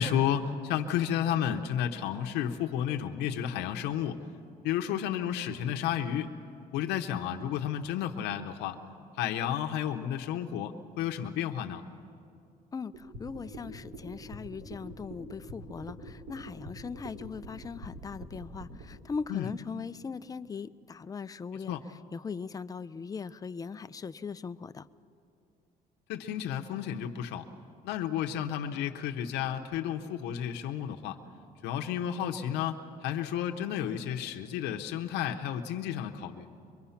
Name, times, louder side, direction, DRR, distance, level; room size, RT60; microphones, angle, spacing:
voice 1, 0.0-4.2 4.6-6.3 6.7-8.8 9.2-11.8 19.3-19.5 21.5-21.8 26.1-27.4 27.8-31.2 31.6-36.5, left 9 dB, 90° left, 4 dB, 0.9 m, -32 dB
voice 2, 12.7-21.8 22.1-24.9, left 5 dB, 20° left, 12 dB, 0.5 m, -39 dB
sound 1, 12.9-18.8, right 2 dB, 90° right, 4.5 m, -45 dB
24.0 x 22.5 x 5.8 m, 2.5 s
cardioid pair, 110°, 17 cm